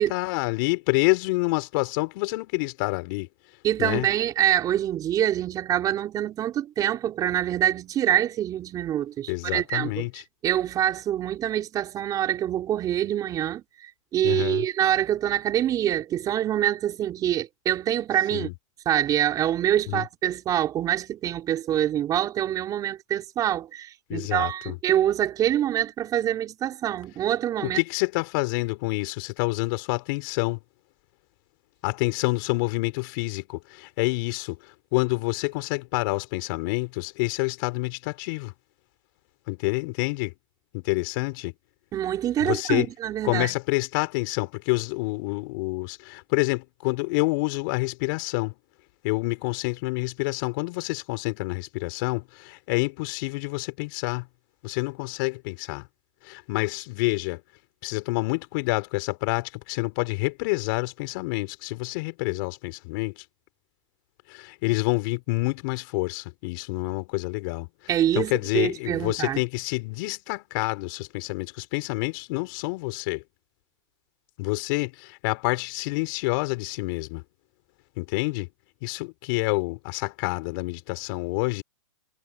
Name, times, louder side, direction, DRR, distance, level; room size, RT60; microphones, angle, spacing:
voice 1, 0.0-3.3 3.8-4.1 9.3-10.2 14.2-14.7 18.3-18.5 19.9-20.1 24.1-24.8 27.6-30.6 31.8-38.5 39.5-40.3 40.7-41.5 42.4-42.9 43.2-48.5 49.0-54.3 54.6-55.8 56.2-57.4 57.8-63.2 64.3-67.7 68.1-73.2 74.4-77.2 78.0-78.5 78.8-81.6, left 26 dB, 40° left, 4.4 m, -28 dB
voice 2, 3.6-10.0 10.4-18.5 18.9-27.8 41.9-43.6 67.9-69.4, right 11 dB, 20° right, 4.3 m, -25 dB
hypercardioid pair, 140°, 17 cm